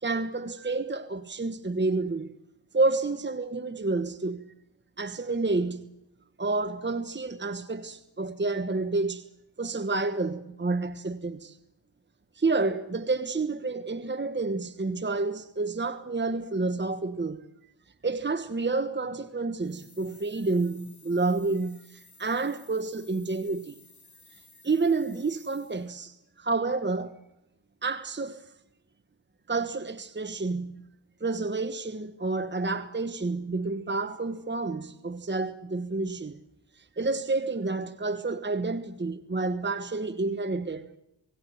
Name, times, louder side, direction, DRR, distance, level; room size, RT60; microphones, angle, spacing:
voice 1, 0.0-2.3 2.7-4.5 5.0-5.9 6.4-9.3 9.6-11.6 12.3-17.4 18.0-23.8 24.3-27.2 27.8-28.5 29.5-30.8 31.2-36.4 36.7-40.9, right 3 dB, 25° right, 1.3 m, -29 dB
sound 1, 19.6-26.0, left 3 dB, 40° left, 5.0 m, -57 dB
28.5 x 18.5 x 7.9 m
cardioid pair, 60°, 44 cm